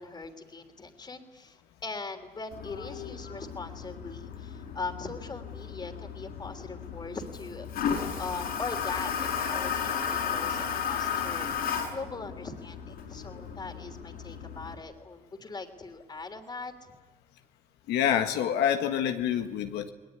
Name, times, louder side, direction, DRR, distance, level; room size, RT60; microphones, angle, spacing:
voice 1, 0.0-7.7 8.2-11.5 11.9-16.7, left 3 dB, 25° left, 6 dB, 3.2 m, -40 dB
Toilet flush, 2.5-14.7, left 7 dB, 65° left, 5.3 m, -34 dB
voice 2, 17.9-19.9, left 9 dB, 85° left, 6 dB, 1.7 m, -27 dB
29.0 x 20.0 x 9.7 m, 1.2 s
cardioid pair, 110°, 17 cm